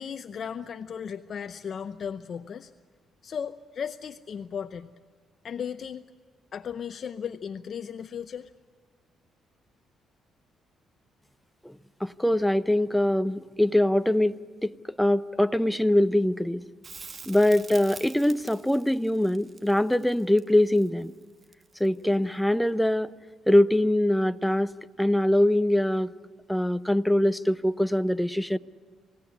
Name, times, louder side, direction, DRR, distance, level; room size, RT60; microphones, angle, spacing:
voice 1, 0.0-2.7 3.2-4.9 5.4-6.1 6.5-8.5, left 7 dB, 55° left, 9 dB, 0.7 m, -36 dB
voice 2, 11.6-14.7 15.0-16.6 17.3-21.1 21.8-23.1 23.5-24.7 25.0-26.1 26.5-28.6, left 1 dB, 5° left, 12 dB, 0.7 m, -23 dB
Crackle, 16.8-22.0 24.7-24.8, right 4 dB, 40° right, 1.4 m, -46 dB
28.0 x 17.0 x 9.8 m, 1.5 s
cardioid pair, 90°, 0 cm